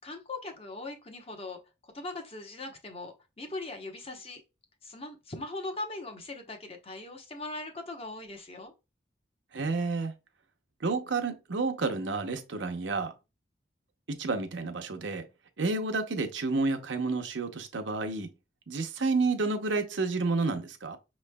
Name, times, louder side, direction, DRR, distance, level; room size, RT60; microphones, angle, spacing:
voice 1, 0.0-4.4 4.8-8.7, left 2 dB, 30° left, 0.9 m, -40 dB
voice 2, 9.5-10.1 10.8-13.1 14.1-15.2 15.6-18.3 18.7-21.0, right 3 dB, 80° right, 0.8 m, -30 dB
6.1 x 3.1 x 2.2 m
head